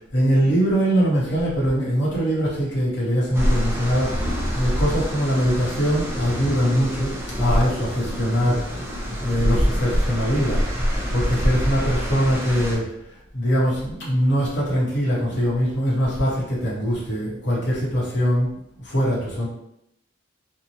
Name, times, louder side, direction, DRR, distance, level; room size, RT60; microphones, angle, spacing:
voice 1, 0.1-8.6 9.2-10.6 11.1-12.9 13.3-18.5 18.8-19.5, equal, 65° left, -6 dB, 0.9 m, -22 dB
sound 1, 3.3-12.8, equal, 15° right, 0.5 m, -26 dB
2.7 x 2.1 x 2.8 m, 0.78 s
head